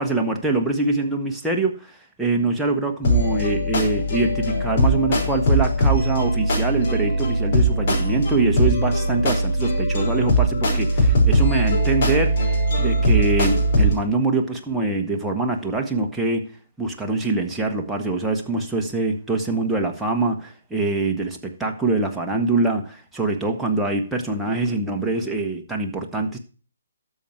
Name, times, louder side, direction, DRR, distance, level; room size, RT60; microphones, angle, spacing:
voice 1, 0.0-12.5 12.8-16.5 16.8-26.4, right 3 dB, 5° right, 1.5 m, -24 dB
sound 1, 3.0-13.9, right 1 dB, 45° left, 5.2 m, -20 dB
12.5 x 7.2 x 4.5 m
figure-of-eight pair, 140°, 0 cm